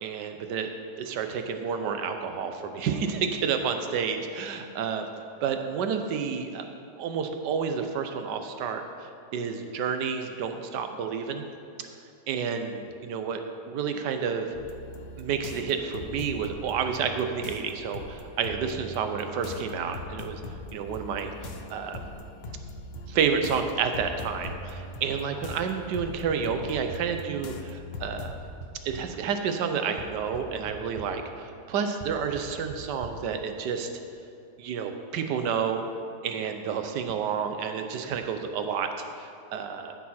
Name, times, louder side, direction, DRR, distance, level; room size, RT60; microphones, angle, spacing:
voice 1, 0.0-0.7 1.0-5.1 5.4-6.6 7.0-11.5 12.3-14.5 15.2-20.4 20.7-21.3 21.7-22.0 23.1-28.4 28.8-33.9 34.6-35.8 36.2-38.9 39.2-40.0, right 6 dB, 75° right, 6 dB, 1.4 m, -30 dB
sound 1, 14.5-28.6, left 3 dB, 65° left, 0.6 m, -42 dB
sound 2, 20.0-20.1 20.5-20.6 21.0-21.1 21.4-21.5 22.0-22.1 22.5-22.6 23.0-23.1 23.5-23.6 24.0-24.1 24.5-24.6 25.0-25.1 25.5-25.6 26.0-27.0 27.9-29.0 30.0-30.1 30.3-30.7 31.0-31.1 32.0-32.1 32.4-32.5 32.7-32.8 33.0-33.1, right 6 dB, 30° right, 0.9 m, -40 dB
13.5 x 6.2 x 4.3 m, 2.5 s
omnidirectional pair, 1.9 m